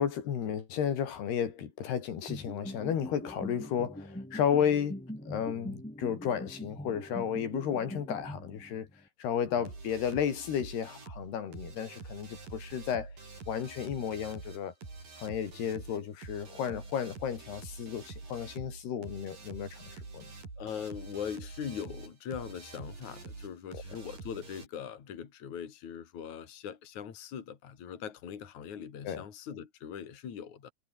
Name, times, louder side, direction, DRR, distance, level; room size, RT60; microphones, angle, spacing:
voice 1, 0.0-8.9 9.2-13.1 13.5-14.7 15.2-20.3 29.0-29.2, left 8 dB, 80° left, 5.0 m, -33 dB
sound 1, 2.3-9.0, equal, 5° left, 1.9 m, -42 dB
sound 2, 9.7-24.7, right 3 dB, 55° right, 9.7 m, -46 dB
voice 2, 20.6-30.7, left 8 dB, 50° left, 4.0 m, -41 dB
omnidirectional pair, 4.6 m